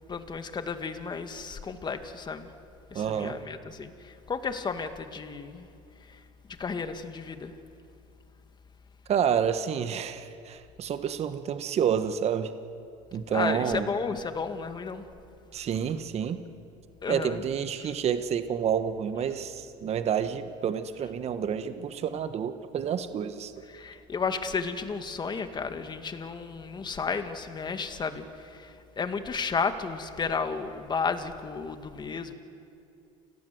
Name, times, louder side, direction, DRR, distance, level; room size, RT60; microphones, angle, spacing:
voice 1, 0.1-2.5 2.9-5.7 6.6-7.5 13.3-15.0 17.0-17.4 17.8-17.9 23.7-32.3, left 5 dB, 25° left, 8 dB, 2.1 m, -33 dB
voice 2, 2.9-3.4 9.1-12.5 13.1-13.9 15.5-16.4 17.1-23.7, right 8 dB, 40° right, 10 dB, 1.3 m, -29 dB
29.5 x 18.0 x 7.9 m, 2.5 s
supercardioid pair, 95°, 17 cm